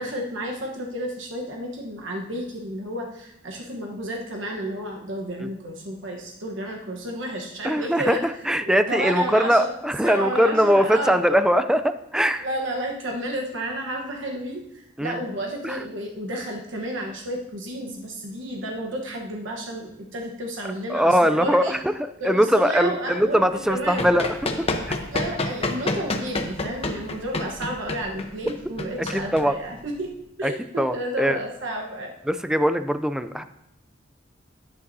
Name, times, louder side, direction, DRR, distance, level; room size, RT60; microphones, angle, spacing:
voice 1, 0.0-8.2 8.6-9.7 10.0-11.2 12.4-21.7 22.2-23.4 23.7-24.1 25.1-30.1 30.4-32.1, right 1 dB, 70° right, 0 dB, 1.1 m, -31 dB
voice 2, 7.6-12.5 15.0-15.2 15.6-15.8 20.9-21.9 22.2-24.7 29.1-29.6 30.4-31.4 32.3-33.4, equal, 5° right, 11 dB, 0.3 m, -21 dB
Run, 23.6-30.1, left 2 dB, 30° left, 0.8 m, -29 dB
10.5 x 9.4 x 2.7 m, 0.83 s
head